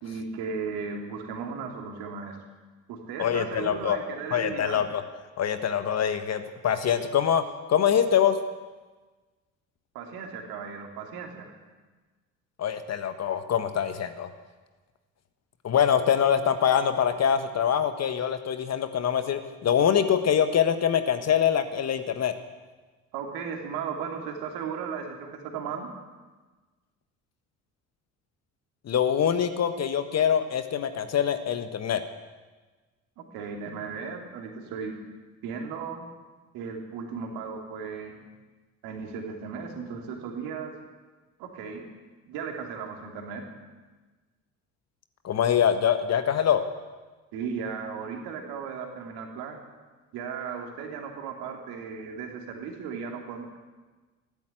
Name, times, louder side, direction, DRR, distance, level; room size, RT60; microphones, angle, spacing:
voice 1, 0.0-2.4 2.9-4.8 9.9-11.5 23.1-25.9 33.2-35.0 35.4-36.1 36.5-38.3 38.8-40.7 41.4-41.8 42.3-43.5 47.3-49.6 50.1-53.6, right 6 dB, 60° right, 2 dB, 2.9 m, -36 dB
voice 2, 3.2-4.0 4.3-5.0 5.4-7.4 7.7-8.4 12.6-14.3 15.6-22.3 28.8-32.0 45.2-46.6, left 8 dB, 40° left, 9 dB, 1.4 m, -24 dB
14.0 x 12.0 x 8.3 m, 1.3 s
figure-of-eight pair, 55°, 42 cm